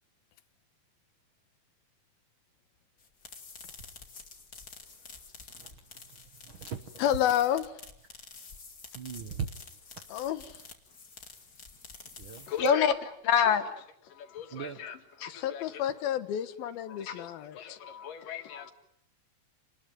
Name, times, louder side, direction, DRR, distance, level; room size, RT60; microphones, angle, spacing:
sound 1, 3.0-13.0, left 4 dB, 30° left, 2.5 m, -49 dB
voice 1, 5.6-7.0 8.9-9.5 12.2-12.5 14.5-14.9, right 7 dB, 80° right, 1.1 m, -40 dB
voice 2, 7.0-7.7 10.1-10.6 15.3-17.8, left 11 dB, 85° left, 3.1 m, -30 dB
voice 3, 12.5-14.9 15.2-15.8 16.9-18.7, left 7 dB, 70° left, 3.3 m, -30 dB
29.0 x 20.5 x 9.3 m
omnidirectional pair, 4.2 m